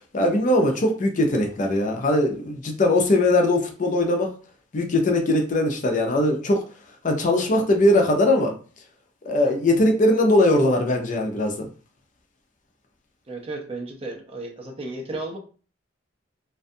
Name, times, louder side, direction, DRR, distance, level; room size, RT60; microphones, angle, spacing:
voice 1, 0.1-4.3 4.7-6.6 7.0-8.5 9.3-11.7, left 1 dB, 40° left, 0.4 m, -20 dB
voice 2, 13.3-15.4, right 2 dB, 30° right, 0.5 m, -34 dB
2.5 x 2.2 x 2.6 m
head